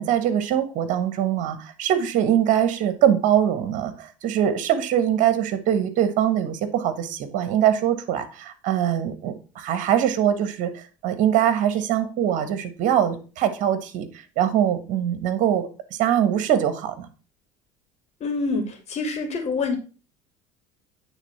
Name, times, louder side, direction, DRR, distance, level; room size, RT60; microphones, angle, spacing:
voice 1, 0.0-14.1 14.4-15.7 16.0-17.1, right 10 dB, 55° right, 10 dB, 1.3 m, -22 dB
voice 2, 18.2-18.6 18.9-19.8, left 4 dB, 45° left, 4 dB, 2.6 m, -25 dB
9.1 x 3.8 x 5.7 m, 0.36 s
hypercardioid pair, 70°, 16 cm